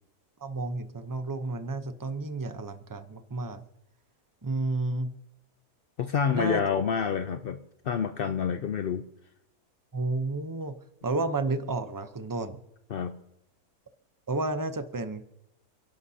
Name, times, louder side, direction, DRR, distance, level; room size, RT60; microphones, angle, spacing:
voice 1, 0.4-3.6 4.4-5.1 6.3-6.6 9.9-10.7 11.0-12.6 14.3-15.2, right 2 dB, 35° right, 9 dB, 0.3 m, -31 dB
voice 2, 6.0-7.6 7.8-9.0 12.9-13.1, left 7 dB, 80° left, 9 dB, 0.5 m, -28 dB
29.0 x 11.5 x 2.8 m, 0.80 s
omnidirectional pair, 1.7 m